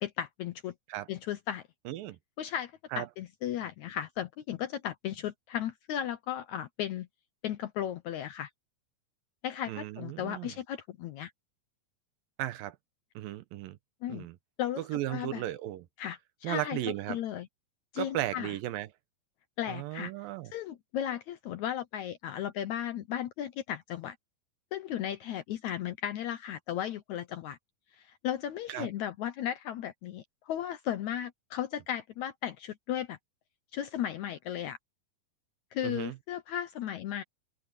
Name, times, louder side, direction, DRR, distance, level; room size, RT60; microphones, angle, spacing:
voice 1, 0.0-0.7 1.1-1.6 2.4-7.1 7.4-8.5 9.4-11.3 14.0-14.3 14.6-14.8 15.1-15.4 16.0-16.8 17.1-17.5 17.9-18.5 19.6-20.1 20.5-24.2 24.7-27.6 28.0-33.2 33.7-34.8 35.7-37.2, left 10 dB, 75° left, 1.8 m, -35 dB
voice 2, 1.9-2.2 2.9-3.1 9.7-10.5 12.4-12.8 13.2-13.8 14.1-14.4 14.8-15.9 16.4-17.2 18.0-18.9 19.7-20.5 28.7-28.9 35.8-36.2, right 14 dB, 80° right, 2.6 m, -35 dB
open air
omnidirectional pair, 4.1 m